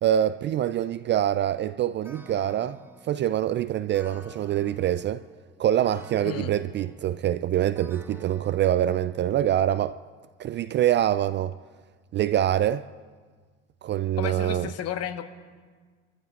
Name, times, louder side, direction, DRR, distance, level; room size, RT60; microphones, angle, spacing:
voice 1, 0.0-2.8 3.1-5.2 5.6-10.0 10.4-11.5 12.1-12.9 13.8-14.7, right 11 dB, 35° right, 0.4 m, -25 dB
sound 1, 2.0-9.7, right 1 dB, 5° right, 1.3 m, -50 dB
voice 2, 14.2-15.2, left 10 dB, 45° left, 1.4 m, -32 dB
26.0 x 14.0 x 2.5 m
hypercardioid pair, 75°, 35 cm